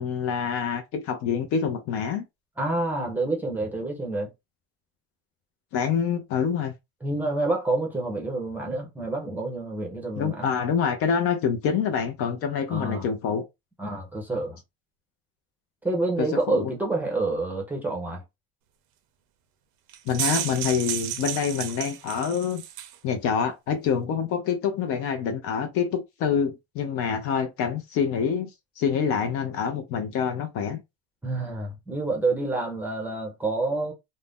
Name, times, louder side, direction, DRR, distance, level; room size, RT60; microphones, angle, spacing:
voice 1, 0.0-2.2 5.7-6.7 10.2-13.5 16.2-16.7 20.1-22.6 23.0-28.5 28.8-30.8, left 7 dB, 45° left, 0.5 m, -26 dB
voice 2, 2.6-4.3 7.0-10.5 12.7-13.1 13.8-14.6 15.8-18.2 31.2-33.9, right 2 dB, 5° right, 0.6 m, -28 dB
sound 1, 19.9-23.0, right 12 dB, 65° right, 0.6 m, -32 dB
2.5 x 2.1 x 3.4 m
cardioid pair, 170°, 32 cm